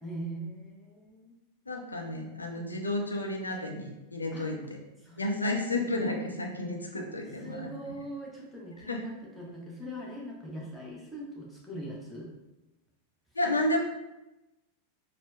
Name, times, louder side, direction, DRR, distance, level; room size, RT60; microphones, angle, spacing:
voice 1, 0.0-1.3 2.5-2.7 4.3-4.5 5.0-5.4 7.4-12.3, right 1 dB, ahead, -5 dB, 0.8 m, -41 dB
voice 2, 1.7-4.6 5.2-7.7 8.9-9.0 13.3-13.8, left 1 dB, 80° left, 1 dB, 0.4 m, -31 dB
4.2 x 2.0 x 2.3 m, 0.98 s
figure-of-eight pair, 90°, 0 cm